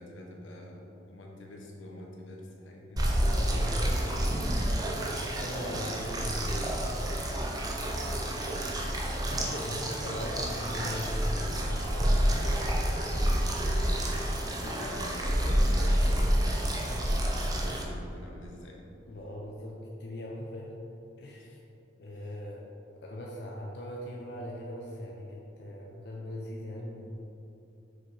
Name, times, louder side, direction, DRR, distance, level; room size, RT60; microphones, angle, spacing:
voice 1, 0.0-3.1 7.8-8.2 13.6-18.8 21.4-21.6, left 1 dB, 85° left, -1 dB, 1.1 m, -46 dB
sound 1, 3.0-17.8, equal, 20° right, 0.7 m, -29 dB
voice 2, 3.1-4.2 5.3-6.7 9.3-13.3 19.0-20.7 21.2-21.5 22.0-22.7 22.9-27.2, left 1 dB, 55° left, -3 dB, 0.7 m, -40 dB
6.4 x 4.7 x 4.9 m, 2.9 s
head